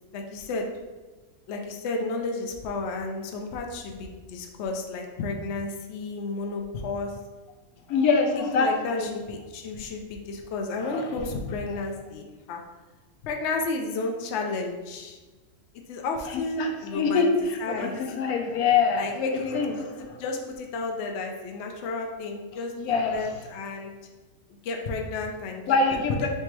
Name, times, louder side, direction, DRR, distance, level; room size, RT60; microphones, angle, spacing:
voice 1, 0.1-0.7 1.5-7.1 8.4-12.6 13.2-15.2 15.9-17.3 17.6-18.0 19.0-23.9 24.6-26.3, left 3 dB, 65° left, 2 dB, 0.7 m, -32 dB
voice 2, 7.9-8.7 9.0-9.1 10.9-11.0 16.6-19.0 19.5-19.7 22.8-23.2 25.7-26.3, left 4 dB, 80° left, 4 dB, 1.1 m, -24 dB
3.4 x 3.0 x 4.5 m, 1.2 s
omnidirectional pair, 1.6 m